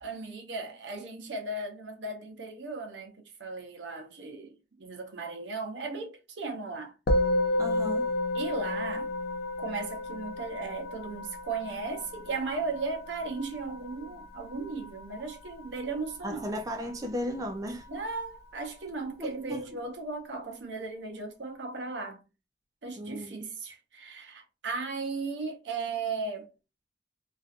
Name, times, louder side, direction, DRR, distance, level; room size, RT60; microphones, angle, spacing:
voice 1, 0.0-6.9 8.3-9.2 9.6-16.5 17.9-22.2 22.8-26.5, right 3 dB, 70° right, 0.7 m, -36 dB
Musical instrument, 7.1-16.6, left 1 dB, 55° left, 0.4 m, -32 dB
voice 2, 7.6-8.1 16.2-17.9 19.2-19.6 23.0-23.4, equal, 20° right, 0.4 m, -35 dB
2.5 x 2.4 x 2.4 m
head